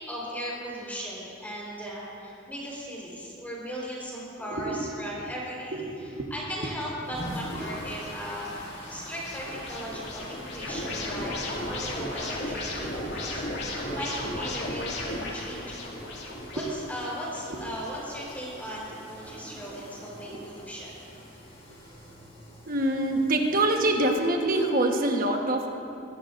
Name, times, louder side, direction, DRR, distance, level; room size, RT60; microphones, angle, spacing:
voice 1, 0.1-8.5 8.9-15.9 16.5-20.9, equal, 10° left, -5 dB, 4.3 m, -37 dB
voice 2, 4.5-4.9 5.7-6.3 7.6-7.7 12.8-13.0 16.2-16.6 17.5-17.8 20.3-20.4 22.7-25.7, right 1 dB, 45° right, 2 dB, 1.3 m, -26 dB
sound 1, 6.6-24.2, equal, 35° left, 4.2 m, -45 dB
sound 2, 7.2-18.7, left 1 dB, 55° left, 2.6 m, -36 dB
22.5 x 16.5 x 2.6 m, 2.7 s
head